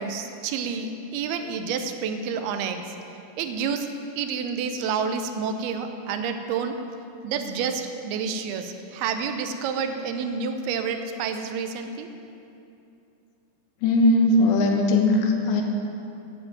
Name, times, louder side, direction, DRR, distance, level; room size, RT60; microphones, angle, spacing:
voice 1, 0.0-3.0 3.4-3.9 4.2-6.8 7.2-12.1, right 6 dB, 90° right, 7 dB, 2.7 m, -29 dB
voice 2, 13.8-15.6, left 2 dB, 85° left, 2 dB, 3.2 m, -19 dB
10.5 x 7.9 x 9.0 m, 2.7 s
omnidirectional pair, 4.4 m